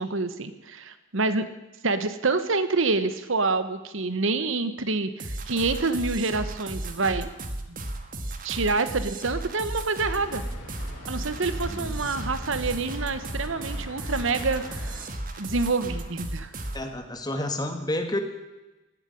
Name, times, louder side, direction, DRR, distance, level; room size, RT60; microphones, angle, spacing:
voice 1, 0.0-1.4 1.8-7.3 7.7-7.8 8.4-10.4 11.1-14.9 15.4-16.5, right 3 dB, 65° right, 12 dB, 1.0 m, -27 dB
sound 1, 5.2-16.9, right 1 dB, 40° right, 1.4 m, -35 dB
sound 2, 10.1-15.1, equal, 80° left, 4.8 m, -40 dB
voice 2, 11.7-12.1 16.7-18.2, left 1 dB, 20° left, 6 dB, 1.6 m, -30 dB
17.0 x 8.1 x 9.7 m, 1.1 s
head